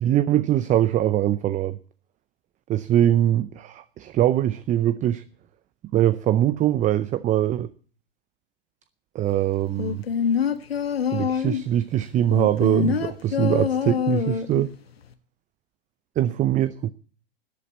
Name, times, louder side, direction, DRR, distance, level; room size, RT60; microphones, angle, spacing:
voice 1, 0.0-1.8 2.7-5.2 5.9-7.7 9.1-10.0 11.1-14.7 16.2-16.9, right 12 dB, 25° right, 0.6 m, -22 dB
sound 1, 9.8-11.7 12.3-14.7 15.0-15.1, left 7 dB, 90° left, 1.3 m, -25 dB
13.0 x 8.4 x 8.2 m
hypercardioid pair, 110°, 29 cm